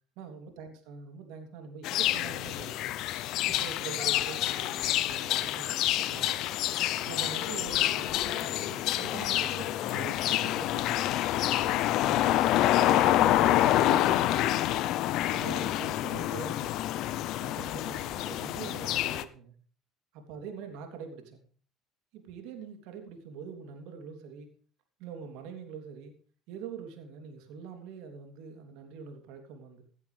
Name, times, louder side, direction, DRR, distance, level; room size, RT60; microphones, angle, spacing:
voice 1, 0.2-2.8 3.5-6.5 6.8-10.9 12.1-12.4 12.8-14.8 15.0-16.8 17.4-19.5 20.1-21.4 22.1-24.5 25.0-26.1 26.5-29.8, right 6 dB, 75° right, 5 dB, 3.2 m, -44 dB
sound 1, 1.8-19.2, left 14 dB, 65° left, 0.8 m, -27 dB
17.0 x 11.0 x 3.5 m, 0.43 s
supercardioid pair, 80°, 0 cm